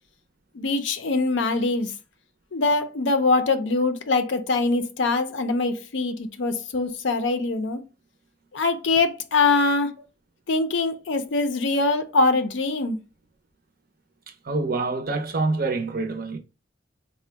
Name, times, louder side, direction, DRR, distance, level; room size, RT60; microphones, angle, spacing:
voice 1, 0.5-1.9 2.5-7.8 8.5-9.9 10.5-13.0, left 3 dB, 65° left, 0.5 m, -23 dB
voice 2, 14.4-16.4, right 3 dB, 45° right, 0.5 m, -26 dB
3.7 x 2.1 x 3.3 m
head